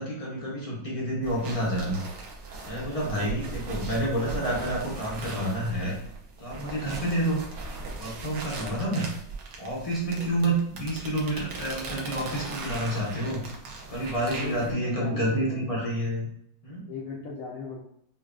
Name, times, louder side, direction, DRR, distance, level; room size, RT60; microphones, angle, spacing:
voice 1, 0.0-2.0 2.7-6.0 6.4-7.4 8.0-9.1 9.6-13.4 13.9-16.3 16.6-16.8, right 1 dB, 45° left, -6 dB, 0.4 m, -29 dB
sound 1, 1.2-14.7, right 3 dB, 65° right, 1.2 m, -39 dB
voice 2, 8.5-8.9 10.1-10.3 14.4-15.7 16.9-17.8, left 3 dB, 80° left, -3 dB, 0.7 m, -38 dB
5.5 x 2.3 x 2.4 m, 0.72 s
omnidirectional pair, 2.1 m